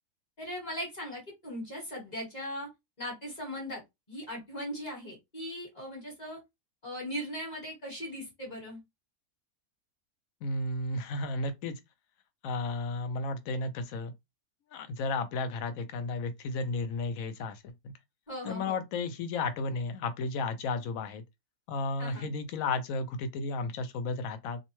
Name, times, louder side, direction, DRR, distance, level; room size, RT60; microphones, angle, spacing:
voice 1, 0.4-2.7 3.0-3.8 4.1-6.4 6.8-8.8 18.3-18.8 22.0-22.3, equal, 30° left, 1.1 m, -39 dB
voice 2, 10.4-11.8 12.4-14.1 14.7-17.6 17.8-17.9 18.4-21.2 21.7-24.6, left 3 dB, 70° left, 0.9 m, -33 dB
2.6 x 2.1 x 3.0 m
omnidirectional pair, 1.6 m